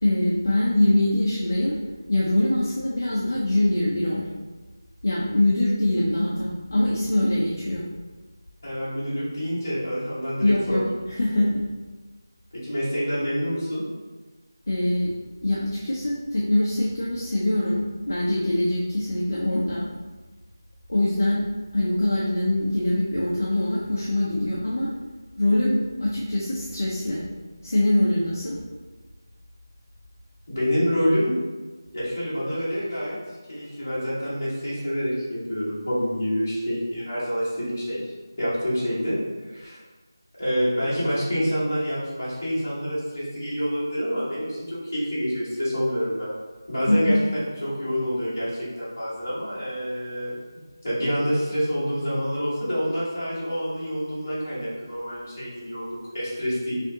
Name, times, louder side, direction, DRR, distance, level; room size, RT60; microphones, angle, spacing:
voice 1, 0.0-1.7 2.1-4.3 5.0-7.9 10.4-11.6 14.7-15.2 15.4-19.9 20.9-21.4 21.7-24.9 25.3-27.2 27.6-28.5 46.9-47.2, left 1 dB, 40° left, -6 dB, 0.5 m, -23 dB
voice 2, 8.6-10.8 11.3-11.4 12.5-13.8 30.5-31.3 31.9-33.2 33.5-38.1 38.4-39.2 39.4-39.8 40.4-46.4 46.7-47.1 47.6-50.3 50.8-56.8, equal, 25° left, -11 dB, 1.2 m, -27 dB
4.9 x 2.5 x 2.7 m, 1.3 s
figure-of-eight pair, 180°, 2 cm